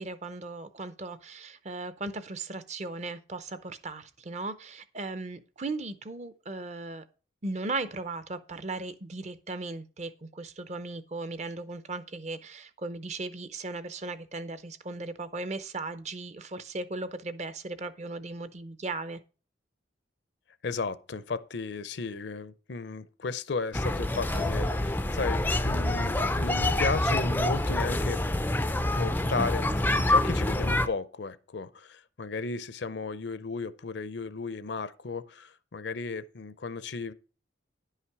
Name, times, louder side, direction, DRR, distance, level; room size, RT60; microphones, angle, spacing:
voice 1, 0.0-7.0 7.4-19.2, right 3 dB, 35° right, 0.6 m, -37 dB
voice 2, 20.6-28.2 28.9-37.1, left 4 dB, 60° left, 0.6 m, -34 dB
sound 1, 23.7-30.9, left 1 dB, 10° left, 0.4 m, -26 dB
10.5 x 5.7 x 4.7 m
head